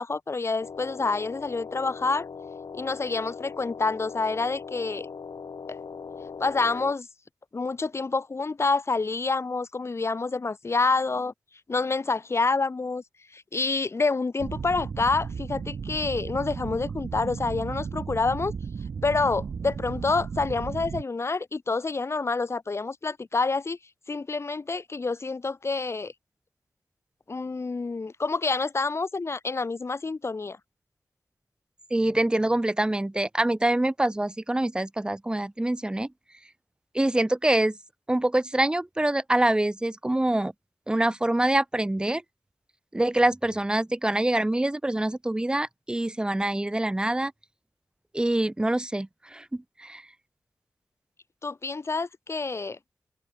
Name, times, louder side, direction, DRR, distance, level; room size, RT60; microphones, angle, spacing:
voice 1, 0.0-2.3 2.7-5.1 5.7-5.8 6.4-7.1 7.5-11.3 11.7-13.0 13.3-18.5 19.0-23.8 24.1-26.1 27.3-30.6 51.4-52.8, left 3 dB, 40° left, 0.6 m, -27 dB
sound 1, 0.6-6.9, left 5 dB, 75° left, 2.0 m, -40 dB
sound 2, 14.4-21.0, right 6 dB, 70° right, 0.6 m, -35 dB
voice 2, 31.9-36.1 36.9-37.8 38.1-40.5 40.9-42.2 42.9-47.3 48.1-50.0, right 1 dB, 10° right, 0.5 m, -25 dB
wide cardioid pair, 105°, 7 cm